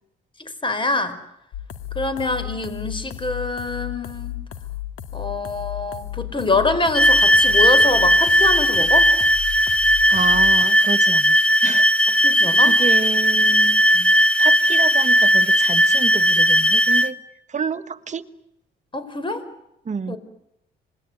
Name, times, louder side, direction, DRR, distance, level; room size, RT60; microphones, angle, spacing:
voice 1, 0.4-1.2 1.9-4.4 5.1-9.1 12.1-12.8 13.9-14.1 18.9-19.5 20.1-20.2, left 2 dB, 25° left, 11 dB, 4.6 m, -25 dB
sound 1, 1.5-10.6, left 13 dB, 90° left, 2.2 m, -33 dB
sound 2, 6.9-17.1, equal, 5° left, 1.3 m, -17 dB
voice 2, 10.1-11.9 12.6-13.8 14.4-17.2 17.5-18.2 19.8-20.2, right 5 dB, 35° right, 10 dB, 1.5 m, -29 dB
27.0 x 20.5 x 9.3 m, 0.82 s
cardioid pair, 90°, 20 cm